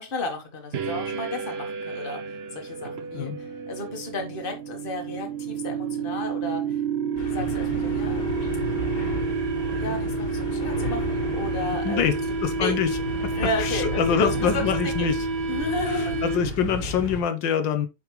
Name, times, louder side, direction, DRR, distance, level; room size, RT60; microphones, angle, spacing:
voice 1, 0.0-6.8 7.2-8.3 9.6-12.0 12.5-12.8 13.3-15.1 15.5-16.4, left 2 dB, 30° left, 1.6 m, -33 dB
sound 1, 0.7-16.7, right 5 dB, 60° right, 0.7 m, -30 dB
sound 2, 7.2-17.2, equal, 60° left, 2.3 m, -33 dB
voice 2, 12.4-12.9 13.6-15.2 15.9-17.9, left 7 dB, 80° left, 1.6 m, -25 dB
7.9 x 5.2 x 3.2 m
omnidirectional pair, 2.0 m